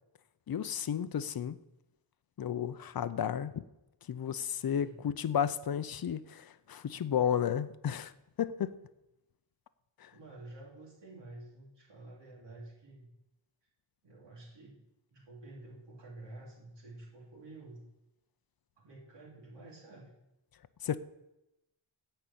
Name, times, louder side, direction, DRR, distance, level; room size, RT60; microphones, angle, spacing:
voice 1, 0.5-1.6 2.4-3.6 4.1-8.1 8.4-8.8 10.0-10.1 20.8-21.0, left 9 dB, 50° left, 0.7 m, -33 dB
voice 2, 4.7-5.0 10.1-13.1 14.0-14.8 15.1-17.8 18.8-20.1, right 2 dB, 65° right, 3.3 m, -50 dB
15.5 x 5.6 x 8.7 m
wide cardioid pair, 155°, 46 cm